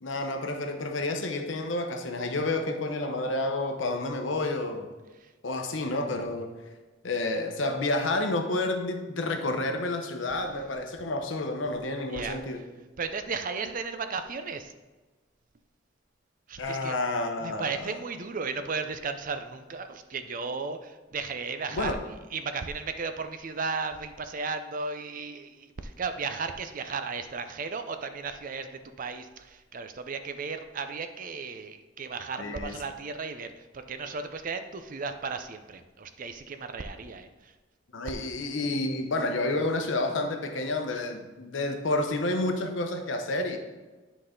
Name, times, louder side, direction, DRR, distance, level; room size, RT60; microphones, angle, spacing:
voice 1, 0.0-4.9 5.4-6.5 7.0-12.6 16.6-17.9 21.7-22.0 32.4-32.8 37.9-43.6, left 2 dB, 75° left, 5 dB, 0.8 m, -30 dB
voice 2, 13.0-14.7 16.5-16.9 17.4-22.0 22.3-37.5, right 4 dB, 45° right, 9 dB, 0.5 m, -35 dB
10.0 x 4.1 x 3.7 m, 1.2 s
head